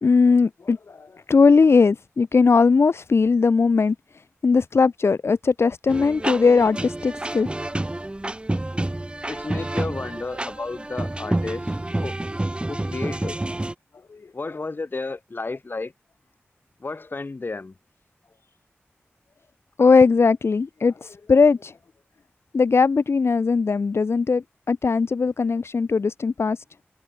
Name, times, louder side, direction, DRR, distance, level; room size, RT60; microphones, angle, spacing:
voice 1, 0.0-4.0 4.4-7.5 14.1-14.6 19.8-21.7 22.5-26.6, left 4 dB, 75° left, 2.2 m, -19 dB
sound 1, 5.9-13.7, right 1 dB, 25° right, 2.1 m, -29 dB
voice 2, 9.3-11.7 12.0-12.2 12.7-13.4 14.3-15.9 16.8-17.7, left 3 dB, 50° left, 5.5 m, -32 dB
wide cardioid pair, 65°, 4 cm